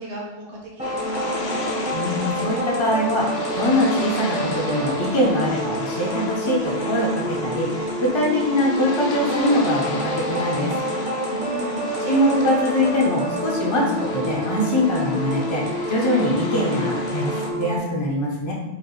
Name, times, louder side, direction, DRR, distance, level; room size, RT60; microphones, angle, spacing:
voice 1, 0.0-1.3 11.2-11.9, equal, 65° right, -3 dB, 1.2 m, -35 dB
sound 1, 0.8-17.5, left 3 dB, 70° left, 0.8 m, -34 dB
sound 2, 0.8-17.8, right 1 dB, 10° right, 0.6 m, -28 dB
voice 2, 1.9-10.8 12.0-18.5, left 1 dB, 35° left, -3 dB, 0.4 m, -23 dB
5.0 x 2.4 x 3.0 m, 1.0 s
omnidirectional pair, 1.2 m